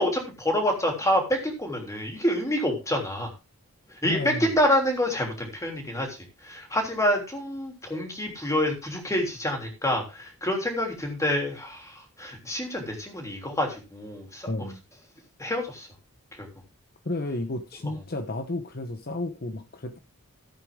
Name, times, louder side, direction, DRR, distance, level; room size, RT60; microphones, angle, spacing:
voice 1, 0.0-3.3 3.9-14.7 15.4-15.9 16.3-16.5, equal, 15° left, 3.3 m, -27 dB
voice 2, 4.0-4.5 14.5-14.8 17.0-20.0, left 2 dB, 45° left, 1.0 m, -32 dB
14.5 x 8.2 x 3.8 m
head